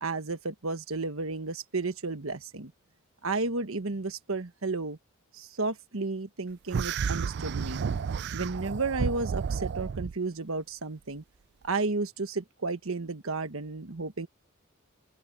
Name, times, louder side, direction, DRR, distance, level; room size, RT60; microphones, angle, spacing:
voice 1, 0.0-2.7 3.2-5.0 5.3-7.8 8.3-11.2 11.6-14.3, right 3 dB, 75° right, 1.3 m, -32 dB
sound 1, 6.7-10.1, right 6 dB, 50° right, 0.4 m, -31 dB
open air
head